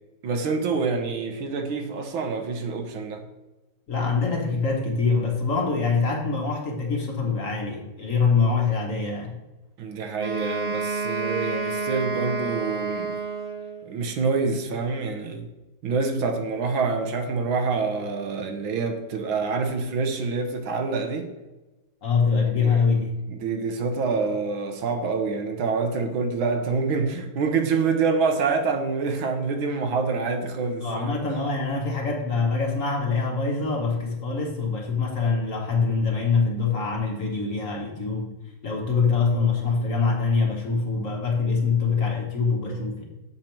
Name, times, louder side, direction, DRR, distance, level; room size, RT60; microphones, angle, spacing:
voice 1, 0.2-3.2 9.8-13.2 13.8-15.5 15.8-21.3 22.6-22.8 23.3-31.2, right 4 dB, 80° right, 5 dB, 1.8 m, -26 dB
voice 2, 3.9-9.3 22.0-23.1 30.8-38.3 38.6-43.1, left 4 dB, 45° left, 1 dB, 1.3 m, -24 dB
Wind instrument woodwind instrument, 10.2-13.9, right 3 dB, 40° right, 0.5 m, -29 dB
7.5 x 6.7 x 4.4 m, 1.1 s
omnidirectional pair, 2.2 m